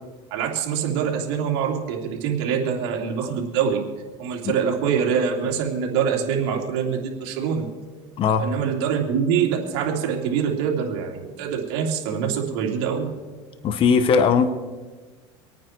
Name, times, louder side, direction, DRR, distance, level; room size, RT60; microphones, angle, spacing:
voice 1, 0.3-3.8 4.2-7.7 8.4-13.1, right 7 dB, 75° right, 0 dB, 3.0 m, -24 dB
voice 2, 13.6-14.5, left 6 dB, 40° left, 11 dB, 0.9 m, -18 dB
25.0 x 9.3 x 4.6 m, 1.3 s
supercardioid pair, 120°, 13 cm